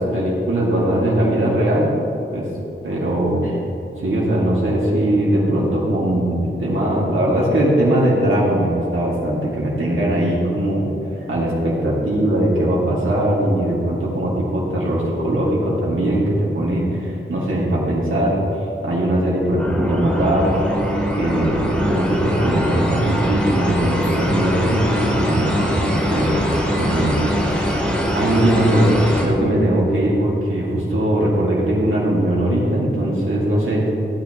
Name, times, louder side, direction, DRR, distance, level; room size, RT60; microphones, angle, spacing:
voice 1, 0.0-1.9 2.3-2.5 2.8-3.6 4.0-10.9 11.3-18.4 18.8-20.6 21.2-27.3 28.1-28.9 29.2-33.9, right 1 dB, 80° right, -6 dB, 2.1 m, -20 dB
sound 1, 19.6-29.2, equal, 5° left, 2.5 m, -22 dB
15.5 x 9.3 x 3.0 m, 2.9 s
wide cardioid pair, 85°, 20 cm